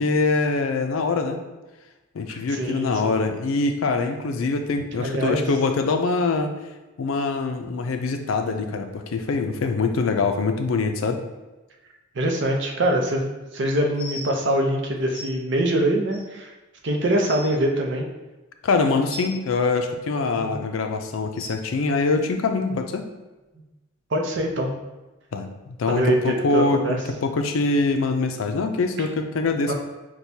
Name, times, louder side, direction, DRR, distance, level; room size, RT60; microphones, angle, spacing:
voice 1, 0.0-1.4 2.1-6.5 7.0-11.2 18.6-23.0 25.3-29.7, left 3 dB, 80° left, 6 dB, 0.4 m, -24 dB
voice 2, 2.5-3.1 5.0-5.4 12.1-16.5 16.8-18.1 24.1-24.8 25.9-27.0 29.7-29.8, right 1 dB, 60° right, 2 dB, 0.6 m, -23 dB
sound 1, 13.9-14.3 15.1-15.3 16.1-16.2 16.8-16.9 17.1-17.5 19.1-19.3 20.3-20.5 21.3-21.5 22.7-22.8 23.5-23.6 24.3-24.4, equal, 20° left, 1.2 m, -37 dB
6.1 x 2.2 x 2.7 m, 1.1 s
head